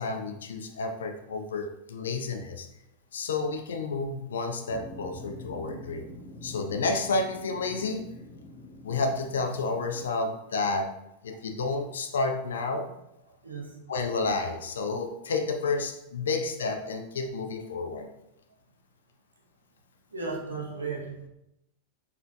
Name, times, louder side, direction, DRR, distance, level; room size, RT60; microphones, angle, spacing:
voice 1, 0.0-2.7 3.1-6.1 6.4-8.0 8.8-10.9 11.2-12.9 13.9-18.1, left 3 dB, 65° left, 6 dB, 0.5 m, -30 dB
sound 1, 4.7-10.0, left 2 dB, 30° left, 0.9 m, -45 dB
voice 2, 13.4-13.8 20.1-21.3, right 4 dB, 75° right, -1 dB, 0.8 m, -35 dB
4.2 x 3.9 x 2.2 m, 0.84 s
figure-of-eight pair, 90°, 0 cm